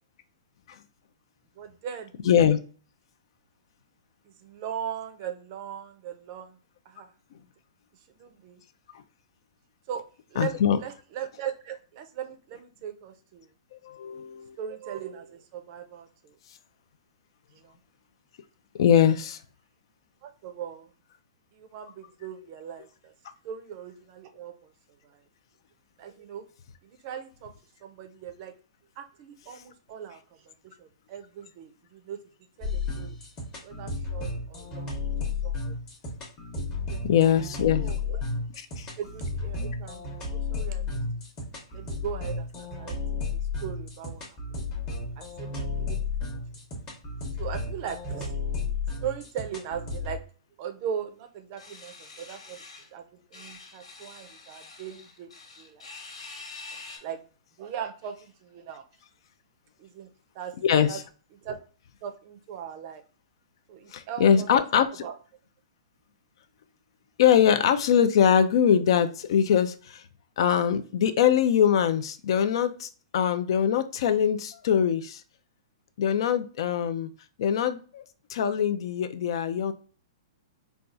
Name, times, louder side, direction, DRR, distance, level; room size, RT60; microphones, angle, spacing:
voice 1, 1.6-2.1 4.4-6.6 6.9-7.1 8.2-8.6 9.9-10.0 10.3-13.5 14.6-16.4 17.5-17.8 20.2-20.9 21.5-23.1 23.4-24.7 25.0-25.2 26.0-26.4 26.8-27.5 27.8-28.6 29.0-30.2 30.4-32.2 32.6-33.2 33.6-34.9 35.4-35.7 36.8-37.1 37.7-38.2 39.0-41.0 41.7-43.2 43.6-44.3 45.2-46.1 47.4-48.3 49.0-50.2 50.6-52.6 52.9-53.1 53.3-55.3 55.6-55.9 57.0-57.2 57.6-58.8 59.8-60.1 60.3-60.5 60.9-61.0 61.4-61.6 62.0-63.0 63.7-64.5 64.8-65.1, right 8 dB, 35° right, 8 dB, 0.5 m, -39 dB
voice 2, 2.2-2.6 10.4-10.8 13.7-14.6 18.8-19.4 37.0-37.8 38.6-38.9 60.6-61.0 63.9-65.0 67.2-70.0 70.4-75.2 76.0-77.1 77.4-78.0 78.3-79.7, left 8 dB, 55° left, 10 dB, 0.4 m, -23 dB
sound 1, 32.6-50.2, left 4 dB, 20° left, 0.9 m, -33 dB
sound 2, 51.6-52.9 53.3-57.0, left 3 dB, 85° left, 1.4 m, -45 dB
4.1 x 2.3 x 2.5 m, 0.39 s
hypercardioid pair, 155°, 3 cm